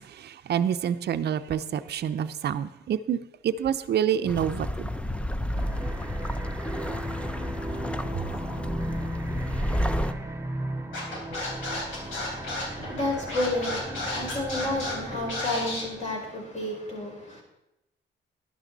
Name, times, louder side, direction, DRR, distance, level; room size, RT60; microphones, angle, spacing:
voice 1, 0.0-4.9, right 9 dB, 55° right, 0.6 m, -28 dB
sound 1, 4.3-10.1, left 1 dB, 5° left, 0.6 m, -31 dB
sound 2, 5.5-16.2, right 1 dB, 15° right, 1.0 m, -36 dB
Scratching (performance technique), 10.9-15.8, left 2 dB, 80° left, 3.9 m, -33 dB
voice 2, 11.4-17.4, left 2 dB, 35° left, 5.0 m, -32 dB
11.5 x 11.0 x 4.0 m
cardioid pair, 90°, 20 cm